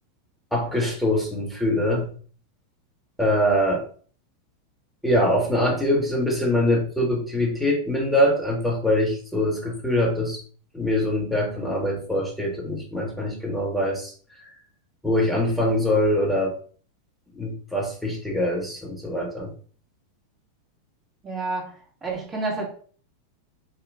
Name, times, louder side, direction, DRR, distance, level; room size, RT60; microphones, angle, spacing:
voice 1, 0.5-2.1 3.2-3.8 5.0-10.4 10.7-14.1 15.0-16.6 17.4-19.5, left 1 dB, ahead, 1.6 m, -23 dB
voice 2, 21.2-22.7, right 3 dB, 20° right, 1.6 m, -30 dB
4.9 x 2.9 x 3.6 m
figure-of-eight pair, 90°, 0 cm